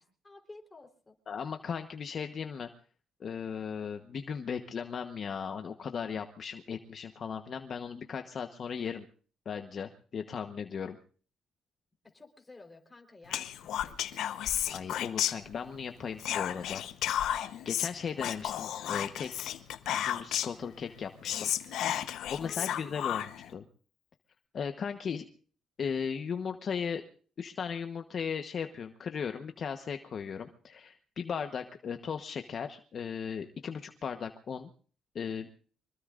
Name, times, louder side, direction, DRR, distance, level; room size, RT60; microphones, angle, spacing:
voice 1, 0.0-1.1 12.1-14.1 22.4-22.7 23.0-23.1, left 3 dB, 20° left, 3 dB, 4.0 m, -53 dB
voice 2, 1.3-2.7 3.2-9.1 9.4-11.0 14.7-16.8 17.2-17.4 17.6-19.6 19.9-21.5 22.3-23.7 24.5-25.2 25.8-27.0 27.4-34.7 35.1-35.5, left 6 dB, 50° left, 6 dB, 1.1 m, -37 dB
Whispering, 13.3-15.8 16.2-20.6 21.0-21.1 21.2-23.5, left 11 dB, 80° left, 0.9 m, -33 dB
25.0 x 21.5 x 2.5 m, 0.42 s
cardioid pair, 100°, 0 cm